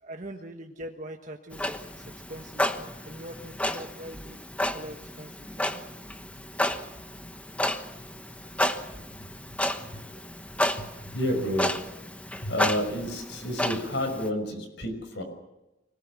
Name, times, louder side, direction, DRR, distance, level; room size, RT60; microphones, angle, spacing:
voice 1, 0.0-4.4 4.7-5.8 12.6-12.7, right 1 dB, 40° right, 3 dB, 1.4 m, -43 dB
Clock, 1.5-14.3, left 1 dB, 5° left, 1.1 m, -32 dB
voice 2, 10.8-11.7 12.4-15.2, equal, 65° left, 7 dB, 5.8 m, -30 dB
25.0 x 19.0 x 7.4 m, 0.98 s
head